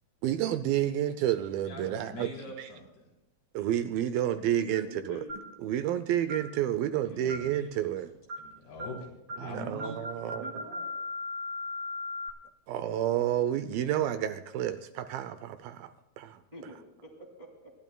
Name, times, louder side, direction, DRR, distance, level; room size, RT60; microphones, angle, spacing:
voice 1, 0.2-2.3 2.6-2.7 3.5-5.2 5.6-8.1 9.4-10.6 12.7-16.4, right 11 dB, 80° right, 11 dB, 2.2 m, -30 dB
voice 2, 1.6-3.1 7.0-7.9 8.4-10.0, left 1 dB, 80° left, -2 dB, 5.4 m, -43 dB
voice 3, 4.8-5.4 10.2-10.9 16.5-17.7, left 1 dB, 15° right, -1 dB, 1.9 m, -47 dB
sound 1, 5.3-5.6 6.3-6.5 7.3-7.6 8.3-8.5 8.8-9.0 9.3-9.5 9.8-12.3, left 2 dB, 55° right, 2.9 m, -38 dB
28.0 x 12.0 x 2.3 m, 0.94 s
omnidirectional pair, 4.5 m